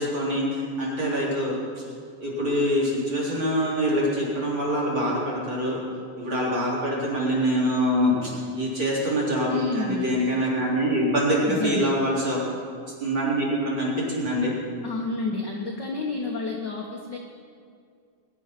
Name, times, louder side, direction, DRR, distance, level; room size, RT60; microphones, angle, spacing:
voice 1, 0.0-1.5 2.2-5.8 6.2-12.4 13.0-14.6, equal, 30° right, -5 dB, 4.3 m, -25 dB
voice 2, 9.5-10.1 11.4-11.9 14.8-17.2, left 3 dB, 60° left, -1 dB, 1.1 m, -30 dB
21.0 x 10.5 x 6.0 m, 2.2 s
omnidirectional pair, 4.1 m